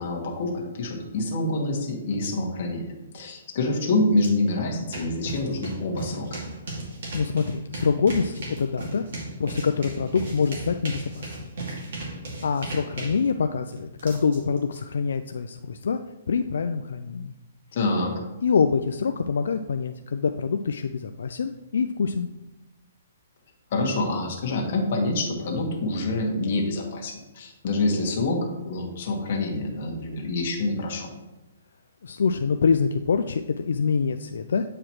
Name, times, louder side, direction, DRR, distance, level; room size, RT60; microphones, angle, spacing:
voice 1, 0.0-6.4 17.7-18.2 23.7-28.4 28.6-31.1, left 2 dB, 40° left, 0 dB, 1.4 m, -26 dB
sound 1, 4.2-4.3 4.6-14.8, right 2 dB, 55° right, 2.1 m, -36 dB
voice 2, 7.1-9.0 9.4-11.3 12.4-16.0 16.3-17.3 18.4-22.3 32.0-34.6, left 5 dB, 75° left, 7 dB, 0.3 m, -25 dB
8.4 x 4.9 x 3.0 m, 1.0 s
hypercardioid pair, 175°, 0 cm